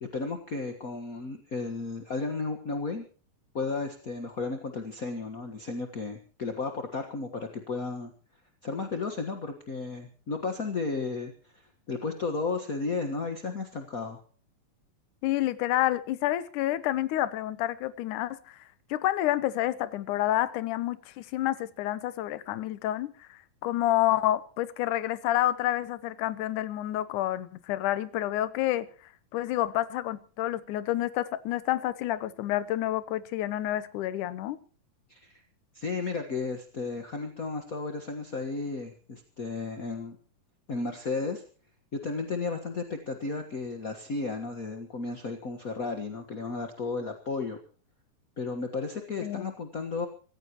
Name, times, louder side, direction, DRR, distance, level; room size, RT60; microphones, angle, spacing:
voice 1, 0.0-3.0 3.5-8.1 8.6-14.2 35.1-35.4 35.7-40.2 40.7-41.4 41.9-47.6 48.4-50.1, left 4 dB, 45° left, 1.1 m, -33 dB
voice 2, 15.2-18.6 18.9-28.9 29.3-34.6 49.2-49.5, left 14 dB, 75° left, 2.3 m, -29 dB
25.5 x 15.0 x 3.0 m
omnidirectional pair, 3.8 m